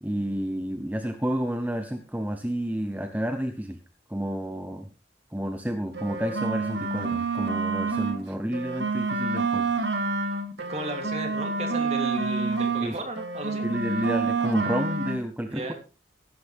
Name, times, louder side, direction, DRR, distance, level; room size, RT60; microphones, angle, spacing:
voice 1, 0.0-3.8 4.1-4.9 5.3-9.7 12.8-12.9 13.6-15.7, equal, 10° right, 6 dB, 0.9 m, -30 dB
sound 1, 5.9-8.2 8.5-12.9 13.2-15.2, right 3 dB, 75° right, 2.0 m, -28 dB
voice 2, 10.7-13.6 15.5-15.7, right 1 dB, 35° right, 4 dB, 3.1 m, -34 dB
15.5 x 12.0 x 3.5 m, 0.33 s
head